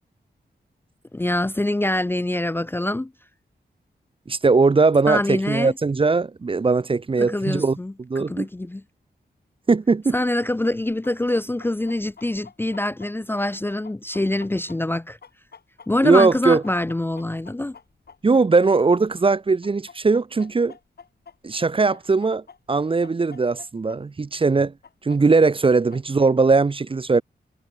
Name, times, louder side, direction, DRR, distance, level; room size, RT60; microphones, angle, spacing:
voice 1, 1.1-3.1 5.1-5.7 7.2-8.8 10.1-15.2 15.9-17.8, left 1 dB, 10° left, 0.6 m, -25 dB
voice 2, 4.3-8.5 9.7-10.1 16.0-16.6 18.2-20.7 21.4-22.4 22.7-24.7 25.0-27.2, right 4 dB, 30° right, 0.7 m, -19 dB
Chicken rooster, 11.0-19.3 19.6-24.0 24.2-24.3 24.8-26.5, left 6 dB, 65° left, 7.9 m, -47 dB
wide cardioid pair, 135°, 18 cm